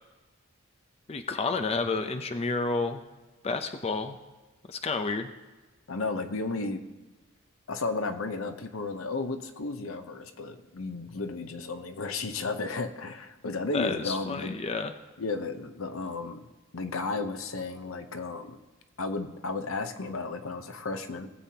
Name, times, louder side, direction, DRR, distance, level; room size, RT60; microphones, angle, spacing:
voice 1, 1.1-3.0 3.4-4.2 4.7-5.3 13.7-14.9, left 3 dB, 30° left, 7 dB, 0.5 m, -30 dB
voice 2, 5.9-6.8 7.7-14.6 15.2-16.5 16.7-18.6 19.0-21.3, left 3 dB, 80° left, 8 dB, 0.8 m, -33 dB
19.0 x 7.6 x 2.8 m, 1.2 s
head